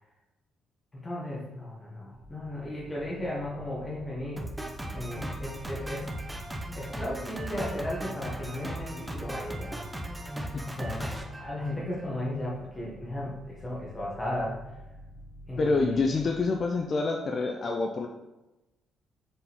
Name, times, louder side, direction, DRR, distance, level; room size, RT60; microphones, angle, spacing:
voice 1, 0.9-4.4 4.9-6.1 6.7-9.7 10.7-14.6 15.5-16.1, left 1 dB, 20° left, -4 dB, 0.9 m, -35 dB
sound 1, 2.1-17.2, equal, 45° right, 1.3 m, -50 dB
Drum kit, 4.4-12.2, right 1 dB, 15° right, 0.5 m, -37 dB
voice 2, 15.6-18.1, left 3 dB, 45° left, 2 dB, 0.3 m, -27 dB
4.0 x 3.5 x 2.9 m, 1.0 s
cardioid pair, 90°, 0 cm